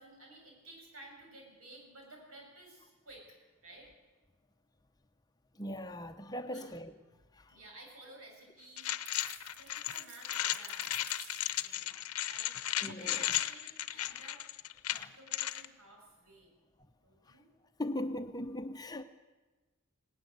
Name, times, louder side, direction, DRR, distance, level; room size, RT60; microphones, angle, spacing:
voice 1, 0.0-3.4 3.6-3.9 6.5-6.7 7.5-9.0 9.6-11.0 11.6-12.0 12.2-14.4 14.9-16.5 17.0-17.5, right 2 dB, 75° right, 7.4 m, -55 dB
voice 2, 5.6-6.9 11.9-12.0 12.8-13.2 14.9-15.1 17.8-19.0, left 1 dB, 15° left, 0.8 m, -39 dB
sound 1, 8.8-15.7, left 13 dB, 90° left, 0.8 m, -35 dB
sound 2, 9.1-11.8, right 5 dB, 50° right, 2.0 m, -52 dB
19.5 x 18.0 x 8.0 m
head